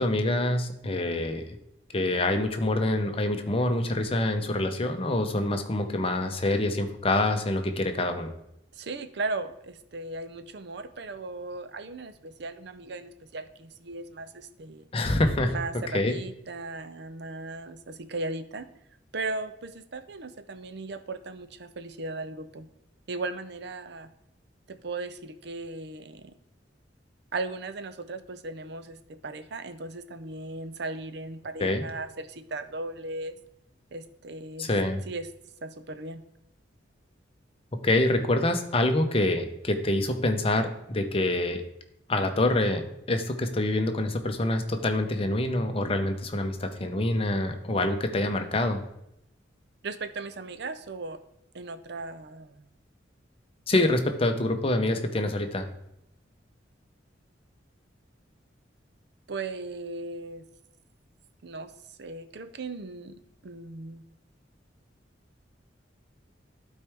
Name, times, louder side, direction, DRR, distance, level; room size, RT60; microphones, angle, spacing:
voice 1, 0.0-1.4 1.9-8.3 14.9-15.5 15.9-16.2 31.6-31.8 34.6-35.0 37.8-41.6 42.1-48.8 53.7-55.7, left 1 dB, 30° left, 6 dB, 0.7 m, -26 dB
voice 2, 8.7-14.9 15.5-18.7 19.1-22.7 23.1-24.1 24.7-26.3 27.3-33.4 33.9-34.7 35.1-35.3 35.6-36.2 49.8-51.2 51.5-52.6 59.3-60.5 61.4-63.1 63.4-64.0, right 3 dB, 60° right, 11 dB, 0.6 m, -37 dB
12.0 x 4.5 x 3.5 m, 0.80 s
head